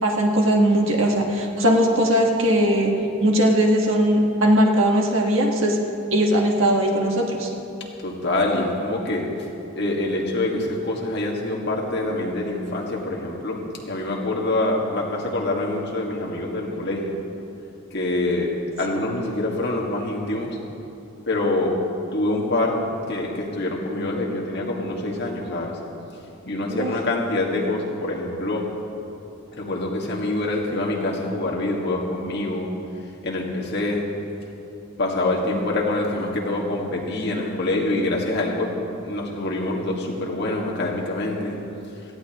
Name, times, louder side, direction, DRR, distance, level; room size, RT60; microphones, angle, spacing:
voice 1, 0.0-2.9 3.2-5.8 6.1-7.5 26.7-26.9, equal, 60° right, 0 dB, 1.5 m, -19 dB
voice 2, 8.0-9.3 9.8-17.2 17.9-18.5 18.8-20.6 21.3-21.7 22.1-22.8 23.1-25.8 26.4-28.7 29.5-32.7 33.2-34.1 35.0-38.7 39.0-41.6, left 2 dB, 50° left, -2 dB, 1.8 m, -25 dB
17.5 x 14.5 x 3.0 m, 2.8 s
head